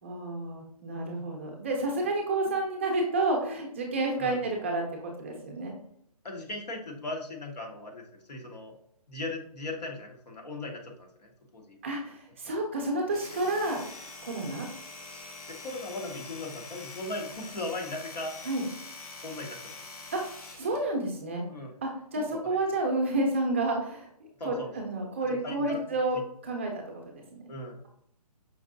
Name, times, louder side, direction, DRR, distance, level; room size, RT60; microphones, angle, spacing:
voice 1, 0.0-5.7 11.8-13.8 14.2-14.7 18.5-18.7 20.1-20.2 20.6-21.4 21.8-24.1 24.4-26.2 26.4-27.4, right 2 dB, 20° right, 1 dB, 0.5 m, -30 dB
voice 2, 6.2-8.7 9.1-11.8 15.1-18.3 19.2-19.7 21.5-21.7 22.1-22.6 24.4-24.7 25.3-25.8 26.1-26.2 27.5-27.8, left 2 dB, 85° left, 1 dB, 1.3 m, -38 dB
Domestic sounds home sounds, 13.0-20.8, left 3 dB, 65° left, 1.0 m, -45 dB
5.1 x 2.7 x 2.6 m, 0.68 s
hypercardioid pair, 165°, 20 cm